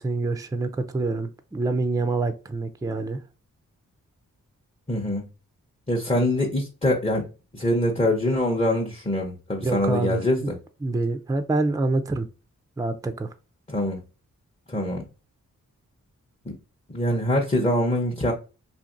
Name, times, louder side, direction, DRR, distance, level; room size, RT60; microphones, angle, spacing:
voice 1, 0.0-3.2 9.6-10.5 10.8-12.3 12.8-13.3, right 3 dB, 10° right, 0.4 m, -26 dB
voice 2, 4.9-5.2 5.9-7.3 7.5-10.4 13.7-14.0 14.7-15.0 16.9-18.3, left 1 dB, 20° left, 0.8 m, -24 dB
2.8 x 2.5 x 2.5 m
supercardioid pair, 40°, 34 cm